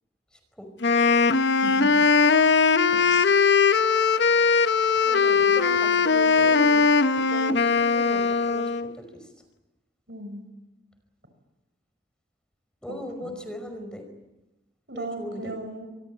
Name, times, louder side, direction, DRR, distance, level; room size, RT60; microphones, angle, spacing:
voice 1, 0.3-0.7 5.0-9.3 12.8-14.1 14.9-15.5, equal, 5° left, 6 dB, 5.1 m, -39 dB
Wind instrument woodwind instrument, 0.8-8.9, left 5 dB, 70° left, 1.0 m, -20 dB
voice 2, 1.6-1.9 2.9-3.3 10.1-10.5 12.9-13.4 14.9-15.9, right 1 dB, 70° right, 7 dB, 7.0 m, -37 dB
27.0 x 22.5 x 8.6 m, 1.0 s
head